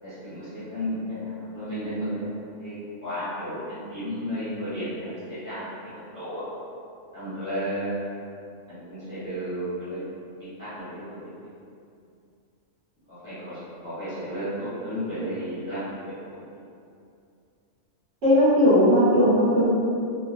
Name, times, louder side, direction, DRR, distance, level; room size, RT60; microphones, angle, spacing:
voice 1, 0.0-2.8 3.0-6.4 7.1-8.0 8.7-10.0 10.3-11.0 11.3-11.5 13.1-16.4, equal, 15° left, -13 dB, 0.8 m, -33 dB
voice 2, 18.2-19.7, equal, 65° right, -11 dB, 1.4 m, -18 dB
3.1 x 2.3 x 2.5 m, 2.5 s
omnidirectional pair, 1.3 m